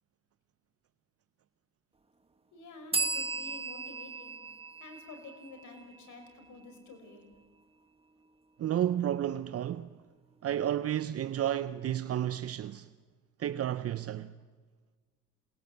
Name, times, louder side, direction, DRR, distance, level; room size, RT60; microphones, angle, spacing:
voice 1, 2.5-4.4 4.8-7.2, left 3 dB, 75° left, 5.2 m, -49 dB
sound 1, 2.9-6.5, right 4 dB, 20° right, 1.6 m, -36 dB
voice 2, 8.6-9.9 10.4-12.9 13.4-14.3, right 11 dB, 50° right, 0.7 m, -31 dB
27.0 x 20.0 x 8.0 m
cardioid pair, 90°, 30 cm